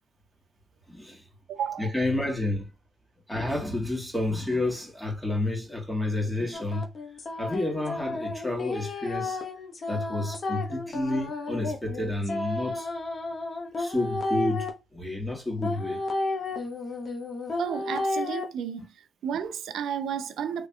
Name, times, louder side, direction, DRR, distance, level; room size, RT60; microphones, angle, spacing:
voice 1, 0.9-1.2 1.8-2.7 3.3-6.9 7.4-9.4 9.9-12.9 13.8-16.0, left 2 dB, 5° left, 1.9 m, -30 dB
voice 2, 1.5-1.9 17.6-18.8 19.2-20.7, right 8 dB, 70° right, 0.6 m, -32 dB
sound 1, 6.5-14.7 15.6-18.4, left 2 dB, 45° left, 1.1 m, -32 dB
3.6 x 3.3 x 2.9 m
cardioid pair, 90°, 0 cm